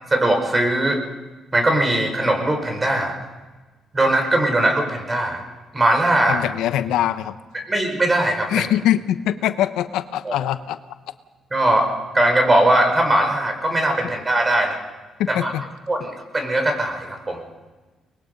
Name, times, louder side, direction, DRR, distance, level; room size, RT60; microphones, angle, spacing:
voice 1, 0.1-1.0 1.5-3.1 3.9-5.4 5.7-6.4 7.7-8.7 10.2-10.3 11.5-11.9 12.1-14.8 15.3-15.5 15.9-17.4, right 1 dB, 20° right, 4 dB, 4.8 m, -20 dB
voice 2, 6.3-7.4 8.5-10.8 15.2-15.6, left 12 dB, 90° left, 12 dB, 0.9 m, -22 dB
24.0 x 21.0 x 5.4 m, 1.3 s
cardioid pair, 90°, 0 cm